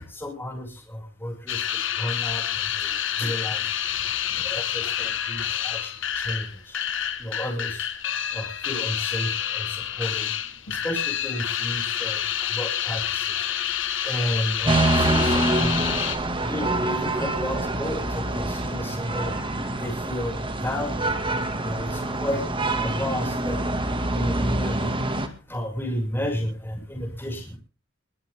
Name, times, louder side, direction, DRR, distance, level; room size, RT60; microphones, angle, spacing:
voice 1, 0.0-1.6 2.0-2.4 2.8-2.9 3.2-3.7 4.3-6.8 7.2-7.9 8.3-10.3 10.7-12.2 12.5-13.3 14.0-16.1 16.4-19.3 19.8-20.4 20.6-21.1 21.6-22.4 22.8-23.6 24.1-24.9 25.5-27.6, equal, 10° left, -1 dB, 6.4 m, -32 dB
sound 1, 1.5-16.2, left 10 dB, 65° left, 1.6 m, -28 dB
sound 2, 14.6-25.3, right 1 dB, 25° right, 2.2 m, -26 dB
22.0 x 14.0 x 3.7 m, 0.36 s
head